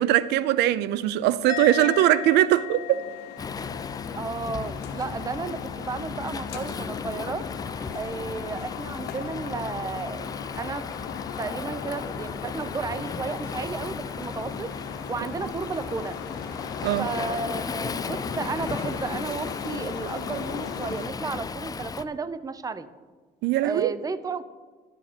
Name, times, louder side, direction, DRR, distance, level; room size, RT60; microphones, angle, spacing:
voice 1, 0.0-3.0 16.8-17.1 23.4-23.9, right 14 dB, 80° right, 0.4 m, -21 dB
Musical instrument, 1.5-4.9 5.1-5.6, left 13 dB, 50° left, 1.2 m, -37 dB
sound 1, 2.3-21.1, left 8 dB, 85° left, 1.0 m, -38 dB
Waves surf, 3.4-22.0, left 5 dB, 20° left, 0.5 m, -35 dB
voice 2, 4.1-7.4 7.9-10.3 10.6-10.9 11.4-14.7 15.1-16.2 17.0-22.9 23.6-24.4, right 4 dB, 20° right, 0.6 m, -33 dB
11.5 x 6.7 x 7.3 m
cardioid pair, 110°, 17 cm